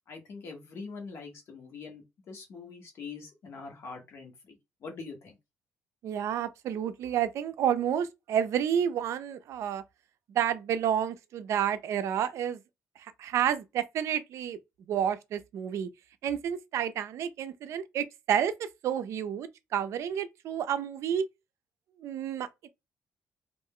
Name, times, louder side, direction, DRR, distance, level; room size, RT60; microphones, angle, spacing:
voice 1, 0.1-5.3, left 4 dB, 55° left, 1.1 m, -44 dB
voice 2, 6.0-9.8 10.3-12.6 13.2-14.6 14.9-15.9 16.2-21.3 22.0-22.5, right 9 dB, 70° right, 0.4 m, -30 dB
2.4 x 2.1 x 3.6 m
cardioid pair, 125°, 5 cm